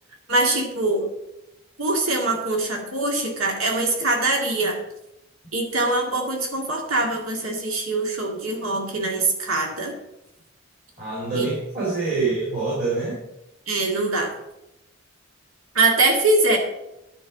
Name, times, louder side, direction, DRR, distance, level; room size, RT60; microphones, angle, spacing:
voice 1, 0.3-1.0 1.8-4.8 5.5-9.9 11.3-11.5 12.1-12.2 13.7-14.3 15.7-16.6, right 2 dB, 90° right, 1 dB, 2.0 m, -23 dB
voice 2, 11.0-13.2, right 3 dB, 40° right, -5 dB, 3.2 m, -25 dB
11.0 x 5.6 x 7.0 m, 0.90 s
head